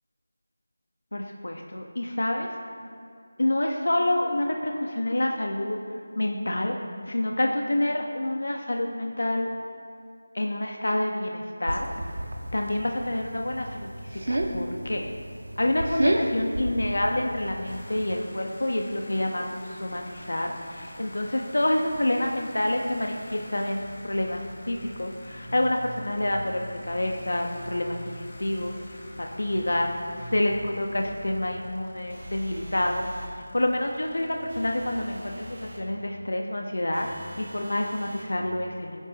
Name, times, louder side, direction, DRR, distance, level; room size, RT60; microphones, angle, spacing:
voice 1, 1.1-2.5 3.4-5.8 6.1-6.7 7.1-9.5 10.3-11.8 12.5-15.0 15.6-29.9 30.2-33.1 33.5-37.1 37.4-39.0, left 1 dB, 85° left, 2 dB, 1.2 m, -28 dB
sound 1, 11.7-18.2, right 1 dB, 85° right, 1.5 m, -31 dB
sound 2, 17.6-35.7, left 1 dB, 30° left, 1.4 m, -44 dB
sound 3, 32.1-33.4 34.5-35.9 36.9-38.4, equal, 40° right, 1.9 m, -43 dB
26.0 x 10.5 x 3.1 m, 2.3 s
figure-of-eight pair, 180°, 0 cm